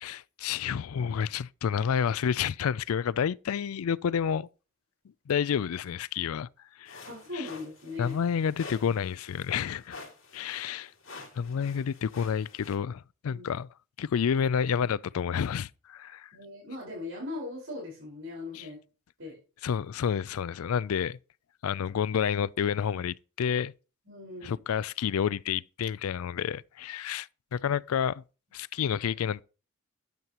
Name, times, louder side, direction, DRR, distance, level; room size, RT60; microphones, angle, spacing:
voice 1, 0.0-4.5 5.3-6.5 6.8-7.0 7.3-7.5 8.0-10.0 10.3-10.9 11.4-13.7 14.0-16.3 18.5-18.7 19.6-21.2 21.6-23.7 24.4-28.2 28.5-29.4, left 7 dB, 90° left, 0.4 m, -29 dB
sound 1, 6.8-12.8, left 3 dB, 65° left, 2.5 m, -48 dB
voice 2, 7.1-8.2 13.2-13.5 16.3-18.8 19.2-19.4 24.0-24.6 27.6-27.7, left 2 dB, 65° right, 4.7 m, -39 dB
12.0 x 9.4 x 3.0 m
head